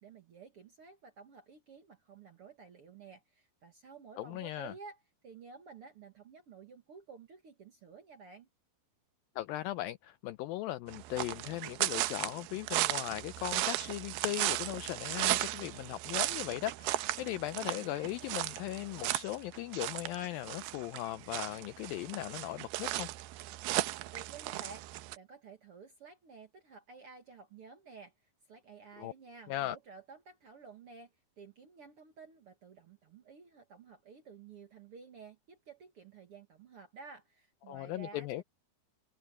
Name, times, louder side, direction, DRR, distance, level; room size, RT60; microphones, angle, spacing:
voice 1, 0.0-8.5 23.8-24.8 25.1-28.1 28.5-38.4, right 5 dB, 55° right, 1.7 m, -53 dB
voice 2, 4.2-4.7 9.4-23.1 29.0-29.1 29.5-29.8 37.7-38.4, left 15 dB, 85° left, 2.1 m, -38 dB
sound 1, 10.9-25.2, right 16 dB, 80° right, 2.5 m, -36 dB
omnidirectional pair, 4.6 m